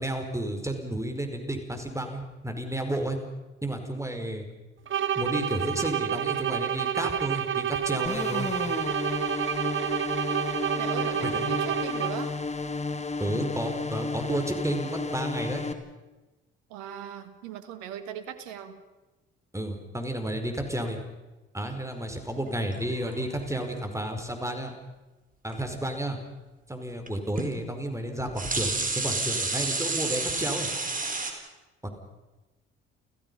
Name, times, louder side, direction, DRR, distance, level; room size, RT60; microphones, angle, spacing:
voice 1, 0.0-3.2 3.6-4.4 5.2-8.5 11.2-11.5 13.2-15.6 19.5-21.0 21.5-24.7 25.4-26.2 26.7-30.7 31.8-31.9, right 1 dB, 10° right, 5 dB, 5.3 m, -32 dB
sound 1, 4.9-12.4, right 9 dB, 45° right, 0.9 m, -29 dB
sound 2, 8.1-15.7, left 3 dB, 25° left, 2.6 m, -32 dB
voice 2, 10.6-12.3 16.7-18.8, right 9 dB, 80° right, 11 dB, 1.6 m, -39 dB
sound 3, 22.7-23.8 25.5-25.6 27.1-27.2 27.4-27.5 28.2-31.3, right 3 dB, 30° right, 4.5 m, -30 dB
29.5 x 16.0 x 5.7 m, 1.1 s
hypercardioid pair, 55°, 29 cm